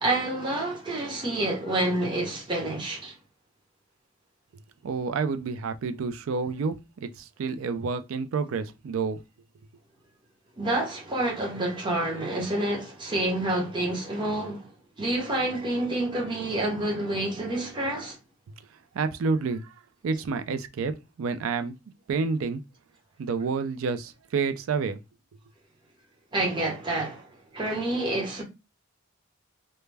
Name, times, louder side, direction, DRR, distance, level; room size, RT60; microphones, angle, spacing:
voice 1, 0.0-3.1 10.6-14.7 15.0-18.2 26.3-27.3 27.5-28.4, right 1 dB, 25° right, 0.9 m, -28 dB
voice 2, 4.8-9.2 18.9-19.7 20.0-20.9 21.2-21.8 22.1-22.6 23.2-25.0, right 4 dB, 80° right, 0.4 m, -29 dB
2.2 x 2.1 x 3.2 m
head